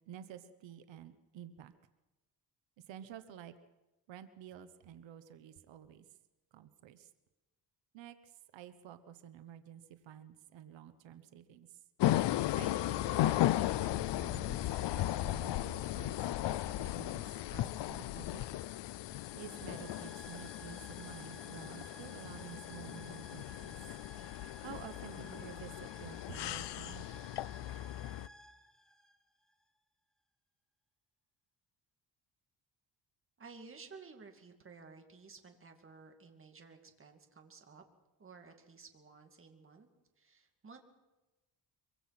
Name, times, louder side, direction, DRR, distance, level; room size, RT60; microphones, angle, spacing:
voice 1, 0.1-1.7 2.9-3.5 4.1-6.0 6.5-7.1 7.9-8.2 8.5-11.8 12.5-14.6 14.9-18.5 19.1-23.8 24.6-27.3, right 10 dB, 90° right, 11 dB, 1.3 m, -51 dB
sound 1, 12.0-28.3, left 14 dB, 70° left, 0.7 m, -36 dB
sound 2, 19.1-29.6, equal, ahead, 2.1 m, -56 dB
voice 2, 33.4-37.8 38.2-39.9 40.2-40.8, right 4 dB, 30° right, 4 dB, 2.6 m, -54 dB
24.0 x 24.0 x 6.0 m, 1.1 s
cardioid pair, 150°, 44 cm